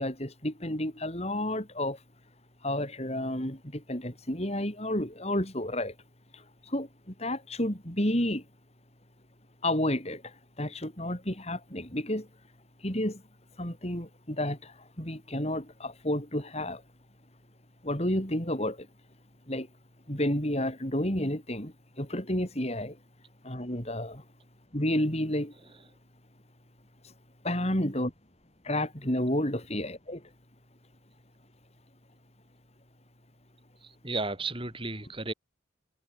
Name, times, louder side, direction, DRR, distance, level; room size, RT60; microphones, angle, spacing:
voice 1, 0.0-2.0 2.6-5.9 6.7-6.9 7.2-8.4 9.6-10.2 10.6-12.3 12.8-13.2 13.6-14.7 15.0-16.8 17.8-18.8 19.5-19.7 20.1-22.9 23.4-24.2 24.7-25.5 27.4-28.1 28.7-30.2, left 1 dB, 35° left, 5.7 m, -30 dB
voice 2, 33.8-35.3, right 3 dB, 25° right, 6.6 m, -34 dB
head